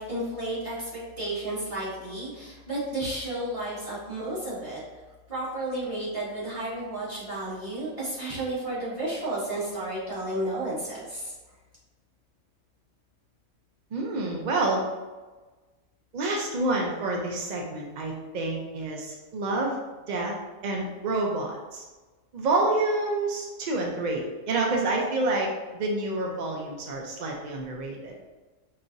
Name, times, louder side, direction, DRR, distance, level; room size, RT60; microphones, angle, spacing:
voice 1, 0.0-4.8 5.3-11.3, right 1 dB, 25° right, -9 dB, 1.5 m, -32 dB
voice 2, 13.9-14.9 16.1-19.8 20.1-20.3 20.6-21.8 22.3-28.1, right 2 dB, 80° right, 0 dB, 0.4 m, -28 dB
5.6 x 2.5 x 2.5 m, 1.2 s
omnidirectional pair, 1.4 m